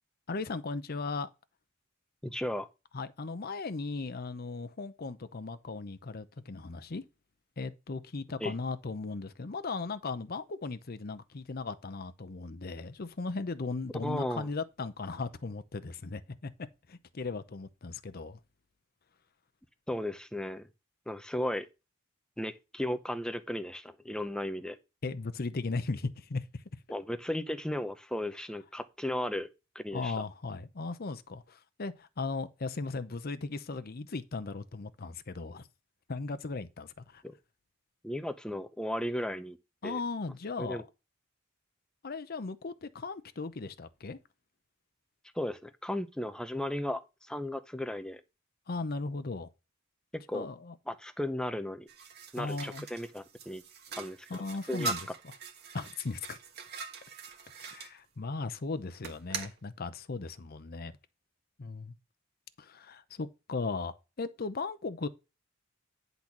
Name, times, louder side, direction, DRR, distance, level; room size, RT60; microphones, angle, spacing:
voice 1, 0.3-1.3 2.9-7.0 7.6-16.5 16.9-18.4 25.0-26.4 29.9-35.7 36.1-37.2 39.8-40.8 42.0-44.2 48.7-49.5 50.3-50.7 52.4-52.9 54.3-55.3 55.7-56.4 57.6-60.9 61.6-61.9 62.6-65.1, left 3 dB, 50° left, 0.7 m, -37 dB
voice 2, 2.2-2.7 8.4-8.5 14.0-14.5 19.9-20.7 21.1-21.7 22.4-24.8 26.9-29.5 29.7-30.2 37.2-37.3 38.0-39.6 39.8-40.0 40.6-40.8 45.3-48.2 50.1-50.5 50.9-51.9 52.3-53.6 53.9-54.2 54.7-54.9, left 1 dB, 5° left, 0.6 m, -35 dB
sound 1, 51.9-57.9 59.0-59.6, right 3 dB, 55° right, 1.4 m, -42 dB
10.0 x 4.0 x 5.9 m
head